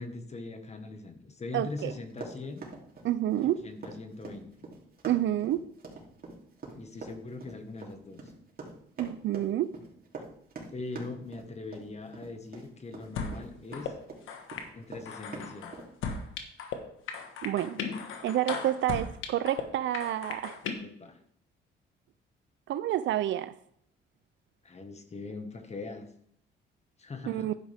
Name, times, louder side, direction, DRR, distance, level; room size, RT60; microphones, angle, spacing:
voice 1, 0.0-2.6 3.4-4.5 6.7-8.3 10.7-13.9 14.7-15.7 20.8-21.2 24.6-26.1 27.0-27.5, left 3 dB, 35° left, 7 dB, 1.5 m, -41 dB
voice 2, 1.5-1.9 3.0-3.6 5.0-5.7 9.0-9.8 17.4-17.8 18.2-20.6 22.7-23.6 27.3-27.6, right 12 dB, 70° right, 13 dB, 0.4 m, -29 dB
Run, 1.8-14.2 14.5-15.9, right 3 dB, 50° right, 3.0 m, -44 dB
sound 1, 13.2-13.4 13.7-13.9 14.3-14.7 15.1-16.8 17.1-19.6 19.9-20.7, left 6 dB, 90° left, 1.4 m, -36 dB
10.5 x 8.8 x 3.5 m, 0.68 s
cardioid pair, 90°, 20 cm